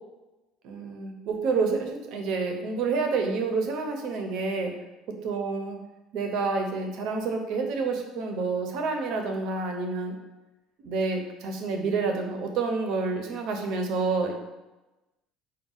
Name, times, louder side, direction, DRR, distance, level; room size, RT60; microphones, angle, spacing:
voice 1, 0.6-4.7 5.2-5.8 6.1-10.1 10.8-14.3, right 4 dB, 55° right, 4 dB, 0.6 m, -28 dB
4.9 x 2.2 x 3.8 m, 1.1 s
cardioid pair, 180°, 0 cm